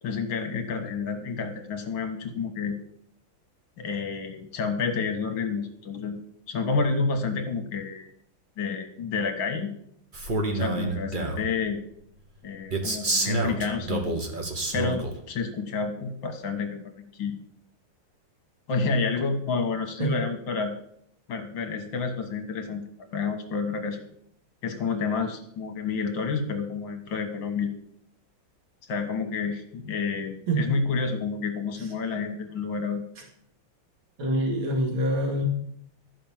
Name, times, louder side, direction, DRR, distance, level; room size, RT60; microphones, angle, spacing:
voice 1, 0.0-2.8 3.8-6.2 6.5-8.1 8.6-9.7 10.5-11.8 12.4-14.1 14.7-17.4 18.7-20.7 21.3-22.8 23.1-24.1 24.6-27.7 28.9-33.0, left 4 dB, 70° left, 6 dB, 2.0 m, -29 dB
Male speech man speaking, 10.1-11.5 12.7-15.1, right 2 dB, 30° right, 1.3 m, -28 dB
voice 2, 34.2-35.4, right 1 dB, 85° right, 1 dB, 3.1 m, -25 dB
13.5 x 5.6 x 7.3 m, 0.69 s
omnidirectional pair, 2.2 m